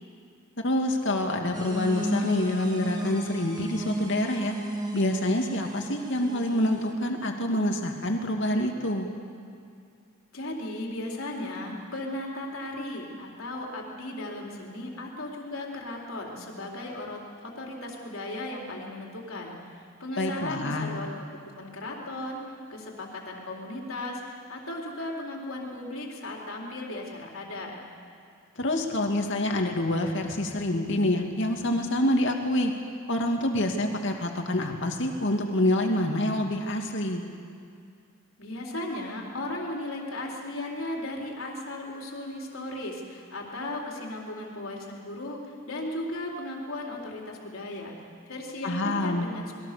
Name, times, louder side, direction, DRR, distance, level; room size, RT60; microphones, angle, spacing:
voice 1, 0.6-4.6 4.9-9.1 20.2-20.9 28.6-32.7 33.1-37.2 48.6-49.3, left 1 dB, 65° left, 2 dB, 2.6 m, -26 dB
sound 1, 1.5-6.9, right 1 dB, 20° right, 2.3 m, -34 dB
voice 2, 10.3-21.1 21.6-22.4 22.7-24.2 24.5-27.8 38.4-45.4 45.7-47.9 48.3-49.5, left 1 dB, 80° left, -1 dB, 4.0 m, -36 dB
27.5 x 21.5 x 6.9 m, 2.3 s
head